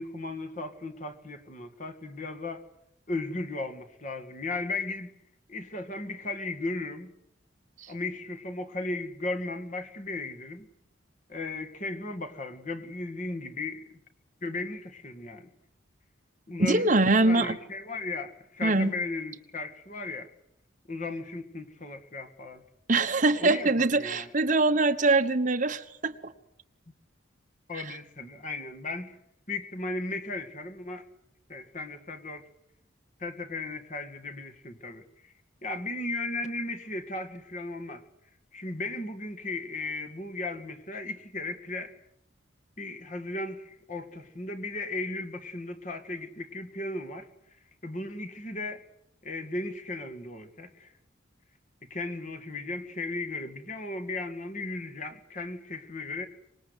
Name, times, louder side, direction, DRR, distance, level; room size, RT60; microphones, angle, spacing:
voice 1, 0.0-2.6 3.1-5.1 5.5-7.1 7.9-10.7 11.3-14.0 14.4-15.5 16.5-20.3 20.9-22.6 23.4-24.3 27.7-29.2 29.5-31.1 31.5-32.5 33.2-35.3 35.6-38.0 38.5-41.9 42.8-48.8 49.2-50.9 51.8-56.3, left 2 dB, 40° left, 2.0 m, -36 dB
voice 2, 16.6-17.6 18.6-18.9 22.9-26.3, right 2 dB, 40° right, 1.2 m, -23 dB
25.0 x 21.0 x 8.2 m
head